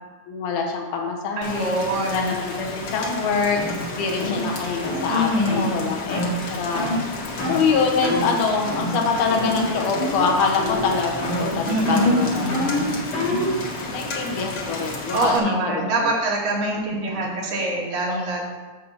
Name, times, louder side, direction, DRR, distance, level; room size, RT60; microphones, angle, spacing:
voice 1, 0.3-1.8 2.1-3.6 3.9-6.2 6.5-6.8 7.4-12.5 12.7-12.9 13.9-16.1, left 5 dB, 75° left, 0 dB, 2.5 m, -25 dB
Rain, 1.4-15.4, left 2 dB, 90° left, 0.9 m, -32 dB
voice 2, 1.4-2.4 5.1-5.9 11.7-12.8 15.1-18.4, right 1 dB, 80° right, -5 dB, 3.5 m, -24 dB
sound 1, 3.6-3.7 4.2-4.4 4.8-5.0 5.5-5.7 6.1-6.3 6.8-7.0 7.4-7.6 8.0-8.3 8.7-9.0 9.3-9.7 9.9-10.3 10.6-10.9 11.2-13.6, left 2 dB, 55° left, 3.3 m, -25 dB
11.0 x 7.2 x 2.8 m, 1.3 s
omnidirectional pair, 3.9 m